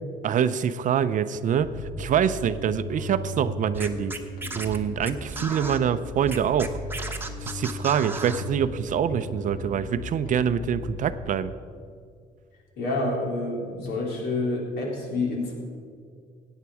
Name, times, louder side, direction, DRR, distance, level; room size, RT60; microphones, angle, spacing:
voice 1, 0.2-1.7 2.0-4.1 4.5-6.8 7.4-11.5, right 8 dB, 50° right, 13 dB, 0.6 m, -25 dB
Bass guitar, 1.6-11.2, left 2 dB, 60° left, 1.5 m, -37 dB
Scratching (performance technique), 3.7-5.8 6.3-8.4, right 3 dB, 10° right, 1.1 m, -35 dB
voice 2, 12.8-15.5, left 2 dB, 75° left, -1 dB, 3.5 m, -28 dB
15.5 x 9.0 x 4.8 m, 2.2 s
cardioid pair, 110°, 17 cm